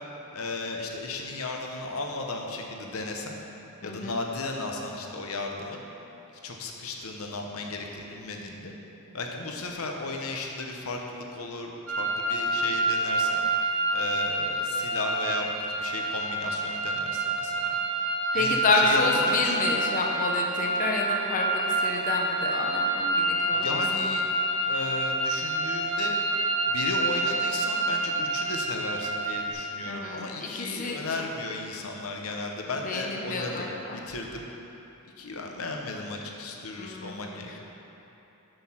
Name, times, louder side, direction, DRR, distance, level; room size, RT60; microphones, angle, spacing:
voice 1, 0.3-3.4 3.8-5.8 6.4-8.7 9.1-13.4 13.9-15.5 15.8-17.8 18.3-19.6 23.5-24.3 24.7-26.2 26.7-34.4 35.2-37.6, left 3 dB, 85° left, 1 dB, 0.9 m, -35 dB
voice 2, 3.8-4.1 18.3-24.1 29.9-31.0 32.8-34.0 36.8-37.6, left 2 dB, 40° left, 0 dB, 0.8 m, -29 dB
sound 1, 11.9-29.5, right 1 dB, 80° right, 1.3 m, -28 dB
7.7 x 6.7 x 5.8 m, 3.0 s
head